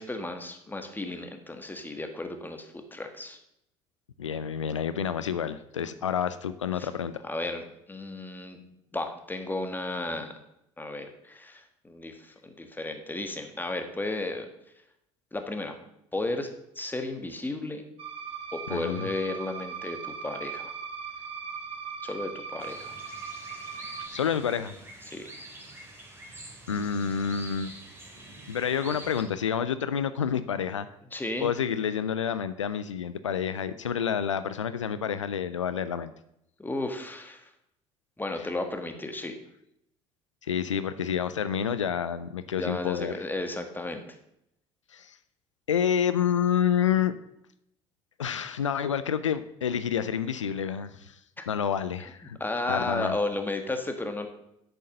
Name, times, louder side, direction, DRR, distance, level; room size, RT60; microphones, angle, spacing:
voice 1, 0.0-3.4 6.8-6.9 7.2-8.6 8.9-10.3 10.8-14.5 15.3-15.8 16.1-17.8 18.5-20.7 22.0-22.9 25.1-25.2 31.1-31.5 36.6-37.5 38.2-39.4 42.5-44.0 51.4-51.5 52.4-54.3, left 2 dB, 10° left, 6 dB, 1.6 m, -34 dB
voice 2, 4.2-7.2 18.7-19.1 24.1-24.7 26.7-27.7 28.5-30.9 31.4-36.1 40.4-43.1 44.9-45.2 45.7-47.1 48.2-51.2 51.5-52.4 52.7-53.1, left 8 dB, 90° left, 13 dB, 0.4 m, -28 dB
sound 1, 18.0-24.1, right 6 dB, 40° right, 1.5 m, -39 dB
sound 2, 22.6-29.2, right 1 dB, 15° right, 3.0 m, -46 dB
8.3 x 6.8 x 6.5 m, 0.79 s
figure-of-eight pair, 60°, 15 cm